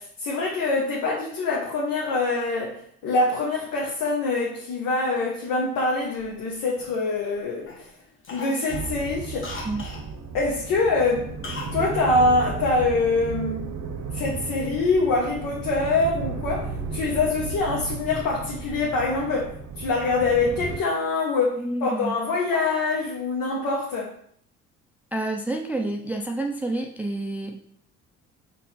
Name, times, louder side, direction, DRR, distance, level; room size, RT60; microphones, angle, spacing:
voice 1, 0.0-7.7 8.3-9.5 10.3-11.3 11.7-13.6 14.1-24.1, left 3 dB, 70° left, -3 dB, 1.0 m, -24 dB
Cough, 6.0-7.3 7.7-7.9 8.2-10.1 11.4-11.8 12.1-12.2, left 3 dB, 35° left, 1.1 m, -39 dB
sound 1, 8.7-20.8, right 5 dB, 50° right, 0.7 m, -34 dB
voice 2, 21.6-22.2 25.1-27.6, right 2 dB, 5° right, 2 dB, 0.4 m, -29 dB
4.1 x 2.5 x 4.1 m, 0.63 s
supercardioid pair, 75°, 33 cm